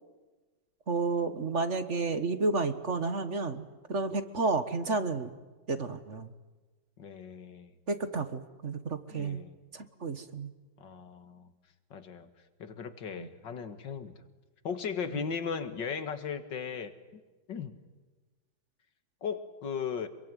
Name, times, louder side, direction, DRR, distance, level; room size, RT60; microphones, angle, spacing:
voice 1, 0.9-3.6 3.9-5.3 5.7-6.3 7.9-9.4 9.7-10.5 13.2-13.3 15.1-15.3, right 3 dB, 40° right, 10 dB, 1.7 m, -31 dB
voice 2, 7.0-7.7 9.1-9.6 10.8-11.5 11.9-12.3 12.6-14.1 14.6-16.9 17.5-17.7 19.2-20.1, left 6 dB, 75° left, 10 dB, 2.5 m, -37 dB
26.5 x 23.0 x 9.3 m, 1.2 s
omnidirectional pair, 2.0 m